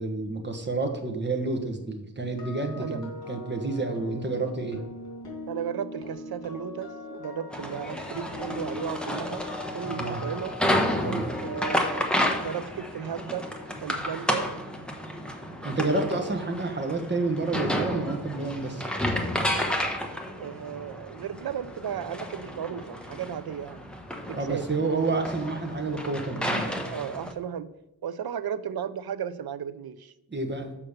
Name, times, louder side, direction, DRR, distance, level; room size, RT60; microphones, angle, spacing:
voice 1, 0.0-4.8 9.8-10.2 11.0-11.3 15.6-18.9 24.3-26.9 30.3-30.7, right 3 dB, 25° right, 4 dB, 1.3 m, -29 dB
sound 1, 2.2-16.2 16.5-16.8, left 3 dB, 70° left, 3.5 m, -42 dB
voice 2, 5.5-9.5 9.7-10.5 11.4-13.5 13.8-14.5 20.4-23.8 24.2-24.6 25.1-25.2 26.9-27.7 28.0-30.1, right 8 dB, 65° right, 13 dB, 0.6 m, -35 dB
sound 2, 7.5-27.3, equal, ahead, 1.1 m, -31 dB
7.2 x 5.3 x 6.6 m, 0.89 s
wide cardioid pair, 110°, 40 cm